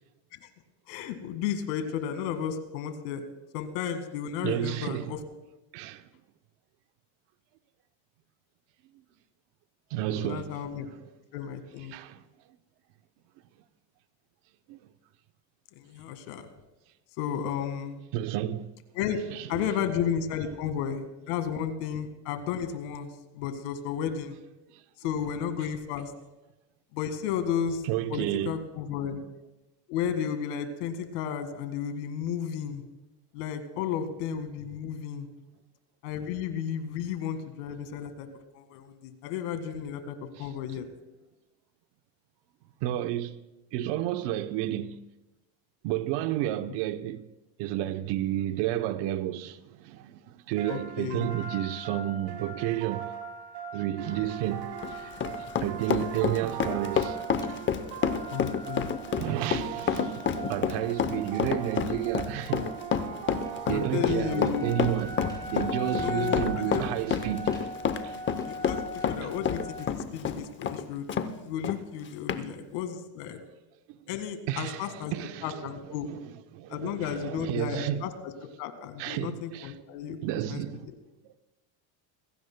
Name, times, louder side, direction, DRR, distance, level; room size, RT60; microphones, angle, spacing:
voice 1, 0.9-3.3 3.5-5.2 10.1-10.9 11.3-11.9 15.8-16.5 17.2-18.0 18.9-19.2 19.5-24.4 25.0-26.1 26.9-27.8 28.1-29.2 29.9-32.8 33.3-35.3 36.0-38.3 38.5-40.9 50.7-51.3 58.3-58.9 63.7-64.9 66.0-66.8 68.5-71.1 71.4-73.4 74.1-75.1 75.4-76.1 76.7-78.3 78.6-80.2 80.5-81.0, left 8 dB, 75° left, 2.0 m, -33 dB
voice 2, 4.4-5.1 5.7-6.1 9.9-10.6 11.9-12.2 14.7-14.8 18.1-18.6 19.3-19.7 27.8-28.5 40.4-40.5 42.8-43.4 43.7-45.0 45.8-47.3 47.6-53.1 53.7-57.2 59.2-62.7 63.7-65.2 65.5-67.6 68.0-68.1 72.4-72.5 73.9-74.0 74.5-75.8 76.1-76.2 76.5-78.1 79.0-79.7 80.2-80.8, right 12 dB, 60° right, 0.9 m, -31 dB
sound 1, 50.6-64.4, right 7 dB, 85° right, 1.7 m, -40 dB
sound 2, 54.0-69.9, equal, 10° left, 3.5 m, -41 dB
Run, 54.6-71.3 71.6-71.8 72.3-72.4, left 7 dB, 25° left, 0.7 m, -29 dB
27.0 x 16.5 x 2.2 m
supercardioid pair, 135°, 48 cm